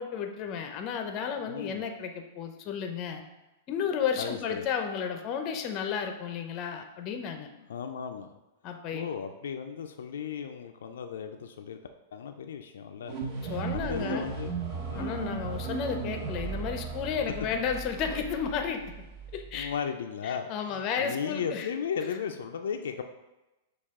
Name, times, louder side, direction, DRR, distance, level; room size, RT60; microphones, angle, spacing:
voice 1, 0.0-3.2 3.7-7.5 8.6-9.1 13.5-14.3 14.9-18.8 19.3-19.7 20.2-21.7 22.0-22.1, left 7 dB, 35° left, 5 dB, 0.5 m, -33 dB
voice 2, 1.5-1.9 4.2-4.7 7.6-8.3 8.9-11.8 12.1-13.2 13.7-14.5 14.9-15.2 19.5-23.0, left 7 dB, 85° left, 6 dB, 0.3 m, -35 dB
sound 1, 13.0-19.7, right 5 dB, 40° right, 0.8 m, -36 dB
6.4 x 2.3 x 3.6 m, 1.0 s
supercardioid pair, 145°, 0 cm